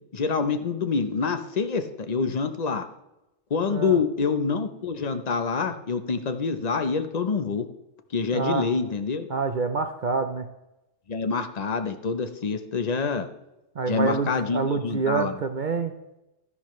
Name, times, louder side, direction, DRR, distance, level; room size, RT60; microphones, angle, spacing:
voice 1, 0.0-2.8 3.5-7.6 8.1-9.3 11.1-13.3 13.9-15.4, left 5 dB, 40° left, 8 dB, 0.8 m, -26 dB
voice 2, 3.7-4.0 8.3-8.7 9.3-10.5 13.8-15.9, right 4 dB, 50° right, 6 dB, 0.7 m, -27 dB
12.0 x 11.0 x 3.1 m, 0.93 s
omnidirectional pair, 1.3 m